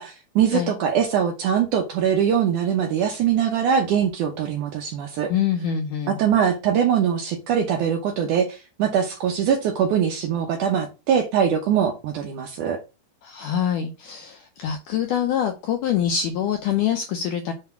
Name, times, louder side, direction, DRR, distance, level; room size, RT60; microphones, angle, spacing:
voice 1, 0.0-5.3 6.1-12.8, right 8 dB, 75° right, 1.9 m, -22 dB
voice 2, 5.3-6.2 13.2-17.5, left 9 dB, 85° left, 1.8 m, -25 dB
7.6 x 3.4 x 5.7 m
omnidirectional pair, 4.5 m